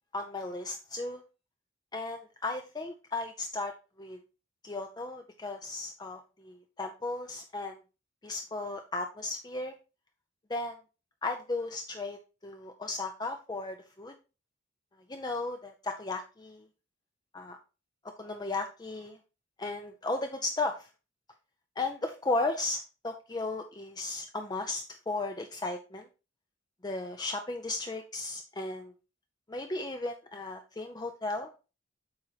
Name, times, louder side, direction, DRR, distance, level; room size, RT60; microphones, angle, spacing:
voice 1, 0.1-1.2 1.9-3.7 4.0-4.2 4.6-7.8 8.2-9.7 10.5-10.8 11.2-14.1 15.1-16.6 17.3-17.6 18.2-19.2 19.6-20.9 21.8-26.1 26.8-28.9 29.5-31.5, left 2 dB, 20° left, 5 dB, 0.5 m, -35 dB
7.7 x 4.4 x 4.0 m, 0.31 s
head